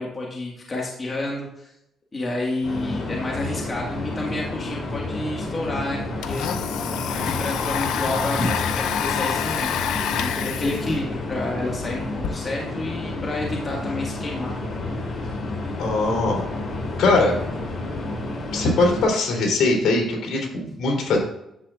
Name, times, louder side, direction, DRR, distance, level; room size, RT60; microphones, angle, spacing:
voice 1, 0.0-1.7 2.1-6.4 7.1-9.7 10.2-14.5, left 2 dB, 30° left, -2 dB, 1.7 m, -29 dB
sound 1, 2.6-19.0, left 2 dB, 50° left, 3.3 m, -30 dB
Domestic sounds home sounds, 5.3-5.4 5.7-12.3, left 9 dB, 85° left, 0.6 m, -28 dB
voice 2, 15.8-16.5 17.0-17.3 18.5-21.2, left 3 dB, 70° left, -1 dB, 3.2 m, -21 dB
10.0 x 7.4 x 2.4 m, 0.82 s
cardioid pair, 90°, 0 cm